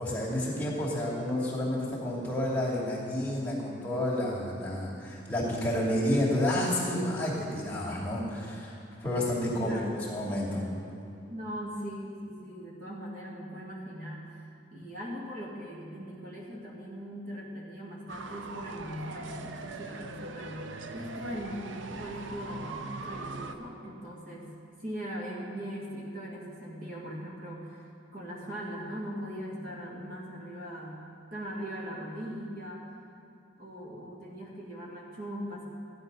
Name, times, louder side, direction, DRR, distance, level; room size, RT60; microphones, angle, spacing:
voice 1, 0.0-9.8 10.1-10.7, left 1 dB, 10° left, -7 dB, 2.5 m, -30 dB
voice 2, 9.6-10.1 11.2-14.2 14.7-24.5 24.8-31.0 31.3-32.8 33.6-35.6, equal, 50° right, -4 dB, 2.1 m, -40 dB
sound 1, 18.1-23.6, right 3 dB, 80° right, 0.7 m, -41 dB
14.5 x 10.5 x 5.4 m, 2.5 s
head